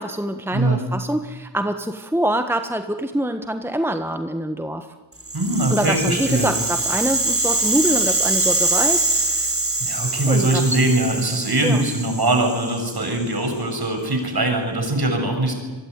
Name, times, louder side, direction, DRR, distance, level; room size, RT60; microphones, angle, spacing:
voice 1, 0.0-4.9 5.7-9.5 10.3-10.8 11.6-11.8, right 1 dB, 5° right, 8 dB, 1.4 m, -25 dB
Rattle (instrument), 5.2-13.4, right 2 dB, 25° right, 3.9 m, -24 dB
voice 2, 5.3-6.5 9.8-15.5, right 2 dB, 50° right, 5 dB, 6.9 m, -21 dB
25.0 x 23.0 x 9.6 m, 1.3 s
wide cardioid pair, 60°, 49 cm